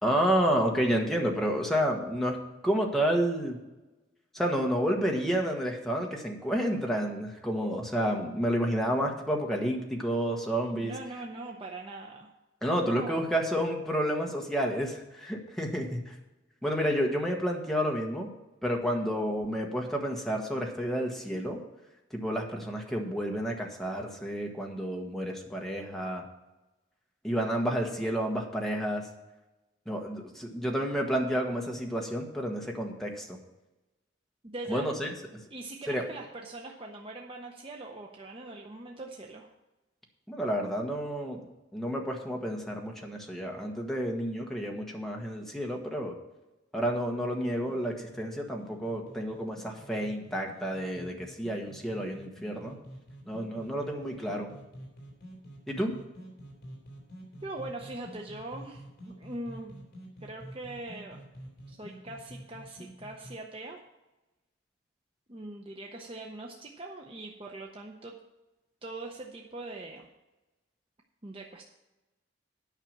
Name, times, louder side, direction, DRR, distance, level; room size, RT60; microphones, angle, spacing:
voice 1, 0.0-2.4 2.6-3.6 4.3-10.9 12.6-16.1 16.6-18.3 18.6-21.6 22.1-26.2 27.2-29.1 29.9-33.4 34.7-35.1 35.9-36.0 40.3-41.4 41.7-46.1 46.7-52.8 53.3-54.5 55.7-56.0, equal, ahead, 0 dB, 1.2 m, -30 dB
voice 2, 10.8-12.3 12.8-13.2 34.4-34.9 35.5-39.5 57.4-59.9 60.2-61.2 61.7-63.8 65.3-68.2 68.8-70.1 71.2-71.7, right 2 dB, 30° right, 1 dB, 0.7 m, -42 dB
sound 1, 47.2-63.3, right 1 dB, 55° left, 3.4 m, -48 dB
9.1 x 5.8 x 7.3 m, 1.0 s
head